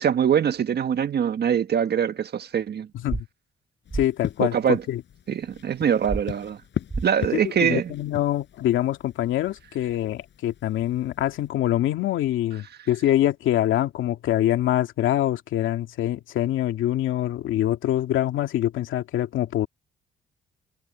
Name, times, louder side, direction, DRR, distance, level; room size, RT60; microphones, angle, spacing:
voice 1, 0.0-2.9 4.4-4.8 5.3-6.6 7.0-7.9, right 8 dB, 55° right, 1.6 m, -23 dB
voice 2, 2.9-3.3 3.9-5.0 7.3-19.7, left 13 dB, 80° left, 2.2 m, -25 dB
sound 1, 3.1-3.2 3.9-4.0 6.1-6.2 6.9-7.1, right 3 dB, 25° right, 2.7 m, -28 dB
sound 2, 3.8-11.5, left 10 dB, 65° left, 5.8 m, -39 dB
cardioid pair, 90°, 20 cm